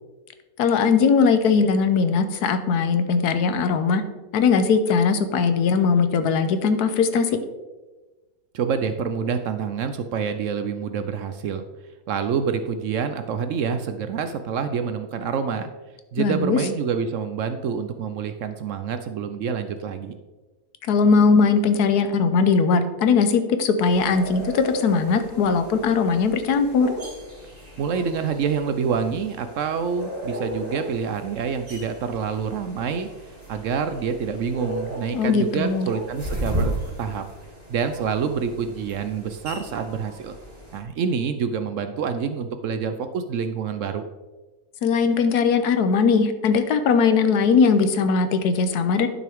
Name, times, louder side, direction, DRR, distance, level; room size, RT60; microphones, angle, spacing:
voice 1, 0.6-4.0 4.3-7.4 16.2-16.6 20.9-26.9 35.1-35.9 44.8-49.1, left 5 dB, 85° left, 9 dB, 1.3 m, -20 dB
voice 2, 8.5-11.6 12.1-15.7 16.1-20.2 27.8-33.1 33.5-37.2 37.7-40.4 40.7-44.1, right 6 dB, 65° right, 9 dB, 0.8 m, -27 dB
sound 1, 23.8-40.8, equal, 35° right, 2.9 m, -36 dB
11.0 x 6.2 x 3.5 m, 1.2 s
omnidirectional pair, 1.6 m